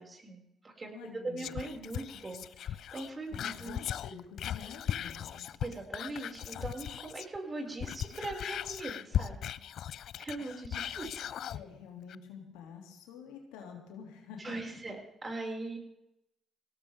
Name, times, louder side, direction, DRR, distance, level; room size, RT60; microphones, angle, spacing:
voice 1, 0.0-3.8 5.6-9.4 10.2-11.5 14.4-15.8, right 2 dB, 35° right, 0 dB, 6.5 m, -41 dB
voice 2, 0.8-1.6 3.3-5.4 11.5-14.8, left 6 dB, 85° left, 1 dB, 3.2 m, -48 dB
Whispering, 1.4-7.4 7.7-11.6 12.1-12.2, left 10 dB, 70° left, 0.5 m, -38 dB
20.0 x 18.0 x 3.8 m, 0.84 s
hypercardioid pair, 50°, 0 cm